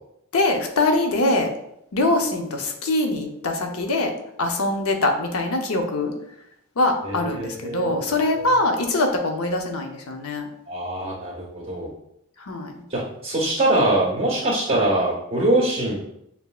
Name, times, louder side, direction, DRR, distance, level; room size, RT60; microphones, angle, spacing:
voice 1, 0.3-1.5 1.9-4.1 4.4-6.1 6.8-10.5 12.4-12.7, left 2 dB, 85° left, 3 dB, 0.7 m, -23 dB
voice 2, 7.0-8.0 10.7-11.9 12.9-16.0, right 1 dB, 30° right, -8 dB, 1.4 m, -23 dB
6.7 x 2.7 x 2.4 m, 0.77 s
head